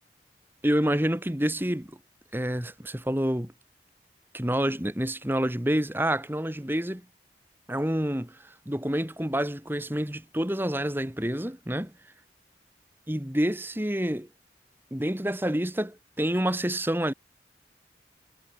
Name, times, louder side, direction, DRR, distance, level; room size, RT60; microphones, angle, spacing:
voice 1, 0.6-2.0 2.3-3.5 4.3-7.1 7.7-12.1 13.1-14.3 14.9-17.1, right 1 dB, 10° right, 1.7 m, -28 dB
head